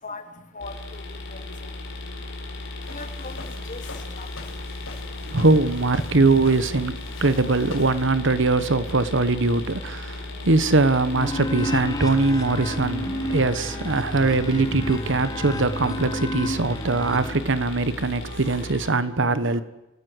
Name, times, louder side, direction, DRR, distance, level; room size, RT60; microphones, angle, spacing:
voice 1, 0.5-1.4 2.9-3.8 4.1-4.3, left 3 dB, 40° left, 2.3 m, -39 dB
sound 1, 0.6-18.9, left 2 dB, 60° left, 5.2 m, -36 dB
Walk footsteps, 2.8-8.0, left 3 dB, 80° left, 6.3 m, -43 dB
voice 2, 5.3-19.6, right 3 dB, 65° right, 1.2 m, -22 dB
sound 2, 11.2-17.3, equal, 20° left, 3.6 m, -30 dB
26.5 x 18.5 x 8.1 m
head